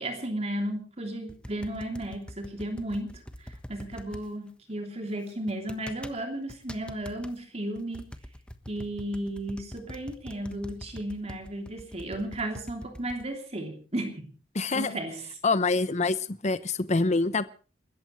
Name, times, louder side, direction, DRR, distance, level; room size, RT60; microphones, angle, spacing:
voice 1, 0.0-8.1 8.7-14.3 14.7-15.3, right 1 dB, 35° right, 4 dB, 3.1 m, -34 dB
sound 1, 1.3-4.2 5.5-6.2 6.5-7.3 7.7-13.2, equal, 5° left, 1.3 m, -43 dB
voice 2, 14.5-15.0 15.4-16.2 16.4-17.4, left 3 dB, 40° left, 14 dB, 0.9 m, -25 dB
29.0 x 14.0 x 3.2 m, 0.35 s
head